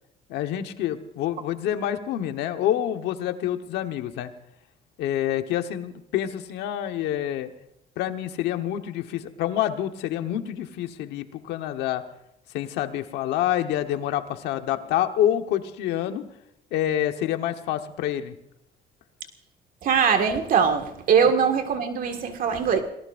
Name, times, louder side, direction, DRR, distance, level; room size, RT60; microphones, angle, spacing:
voice 1, 0.3-4.3 5.0-7.5 8.0-12.0 12.5-16.2 16.7-18.3, left 11 dB, 85° left, 7 dB, 1.3 m, -27 dB
voice 2, 19.8-22.8, right 6 dB, 55° right, 5 dB, 1.9 m, -21 dB
28.5 x 18.5 x 2.6 m, 0.79 s
cardioid pair, 110°, 17 cm